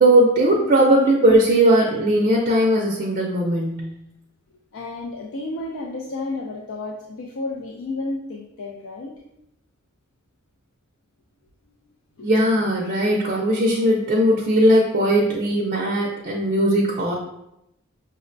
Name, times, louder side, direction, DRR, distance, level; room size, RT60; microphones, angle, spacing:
voice 1, 0.0-3.9 12.2-17.1, right 1 dB, 35° right, -2 dB, 0.4 m, -18 dB
voice 2, 4.7-9.2 11.8-12.3 12.6-12.7, left 2 dB, 70° left, -1 dB, 0.4 m, -32 dB
5.1 x 2.1 x 2.5 m, 0.83 s
head